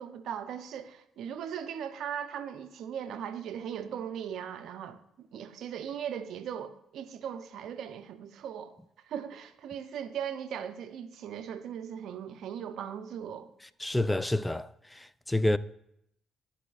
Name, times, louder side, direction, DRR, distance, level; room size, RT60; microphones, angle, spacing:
voice 1, 0.0-8.7 9.1-13.5, right 8 dB, 70° right, 0.6 m, -38 dB
voice 2, 13.8-14.7 15.3-15.6, left 1 dB, 10° left, 0.3 m, -27 dB
12.0 x 4.2 x 2.4 m
supercardioid pair, 55°, 0 cm